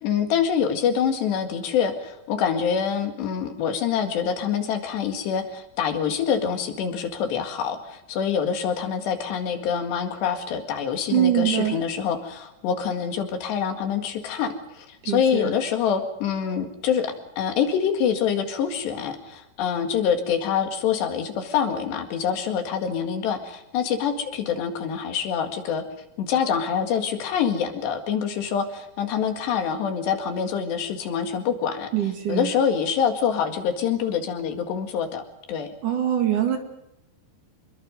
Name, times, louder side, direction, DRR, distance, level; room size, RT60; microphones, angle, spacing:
voice 1, 0.0-25.8 26.2-31.9 32.3-35.2 35.5-35.7, left 7 dB, 80° left, 6 dB, 4.2 m, -25 dB
voice 2, 11.1-11.8 15.0-15.5 31.9-32.5 35.8-36.6, right 11 dB, 55° right, 5 dB, 3.2 m, -23 dB
26.0 x 22.0 x 5.3 m, 0.89 s
omnidirectional pair, 4.9 m